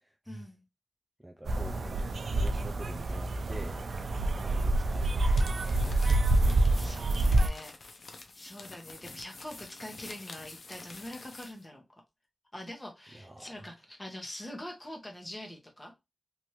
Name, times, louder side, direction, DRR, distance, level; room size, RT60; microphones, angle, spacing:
voice 1, 0.3-0.6 6.7-7.9 8.3-11.8 12.5-15.9, left 1 dB, 20° left, 0.9 m, -44 dB
voice 2, 1.2-3.8 4.4-6.2 13.1-13.7, right 1 dB, 15° right, 0.4 m, -46 dB
sound 1, 1.5-7.5, right 2 dB, 80° right, 0.4 m, -27 dB
sound 2, 5.3-11.6, left 3 dB, 70° left, 0.6 m, -48 dB
3.1 x 2.6 x 2.9 m
wide cardioid pair, 125°, 0 cm